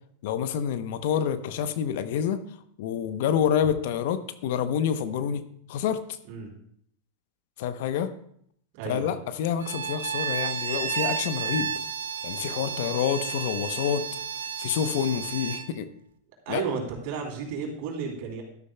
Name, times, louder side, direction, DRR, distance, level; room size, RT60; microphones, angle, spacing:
voice 1, 0.2-2.4 2.8-6.0 7.6-8.1 8.9-11.7 12.2-14.1 14.6-15.8 16.5-16.6, left 8 dB, 65° left, 11 dB, 0.8 m, -27 dB
voice 2, 8.7-9.2 16.4-18.4, right 5 dB, 60° right, 0 dB, 3.1 m, -33 dB
Bowed string instrument, 9.6-15.7, right 7 dB, 80° right, 0.6 m, -32 dB
13.0 x 11.5 x 2.2 m, 0.68 s
hypercardioid pair, 100°, 0 cm